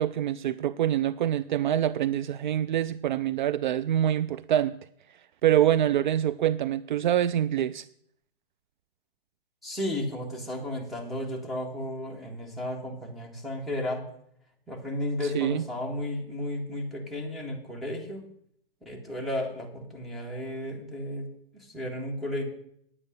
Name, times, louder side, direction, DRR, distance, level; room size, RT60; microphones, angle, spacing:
voice 1, 0.0-4.7 5.4-7.8 15.3-15.6, right 11 dB, 55° right, 15 dB, 0.4 m, -25 dB
voice 2, 9.6-14.0 14.7-18.3 18.9-22.4, left 1 dB, ahead, -1 dB, 1.8 m, -33 dB
9.8 x 8.8 x 6.5 m, 0.69 s
hypercardioid pair, 150°, 30 cm